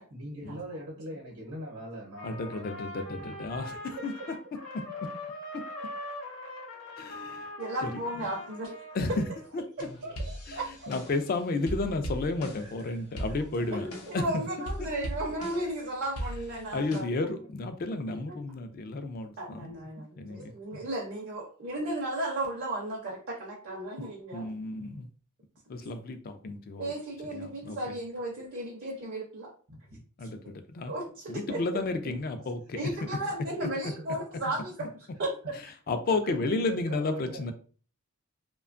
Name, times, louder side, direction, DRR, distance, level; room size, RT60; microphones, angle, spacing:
voice 1, 0.0-2.8 3.1-3.2 3.5-4.3 5.8-5.9 7.6-8.0 9.5-10.7 12.6-13.8 16.6-17.0 17.3-17.5 20.3-20.7 28.3-28.4 29.7-30.0 32.4-32.7 33.2-33.3 33.9-35.8 36.1-37.5, right 1 dB, 75° right, -3 dB, 0.8 m, -45 dB
Trumpet, 2.1-9.5, left 2 dB, 55° left, 0.9 m, -42 dB
voice 2, 2.2-3.8 4.0-4.1 7.0-7.5 7.8-7.9 8.2-8.3 8.6-9.2 9.5-9.6 10.5-10.6 10.9-13.9 14.1-14.4 14.8-14.9 16.7-19.7 20.2-20.8 24.3-25.1 25.7-26.9 27.3-27.8 30.2-30.9 31.3-32.8 35.9-37.5, left 3 dB, 40° left, 8 dB, 0.3 m, -32 dB
voice 3, 7.6-8.7 9.8-9.9 13.7-13.8 14.1-17.2 18.1-18.4 19.4-24.5 26.8-29.5 30.9-31.6 32.7-34.7 35.2-35.3, right 1 dB, 50° right, -2 dB, 0.6 m, -34 dB
sound 1, 9.8-11.3 11.7-12.8 13.2-14.3 14.7-15.8 16.2-17.0, equal, 90° left, 0.6 m, -38 dB
2.8 x 2.2 x 2.4 m, 0.40 s
head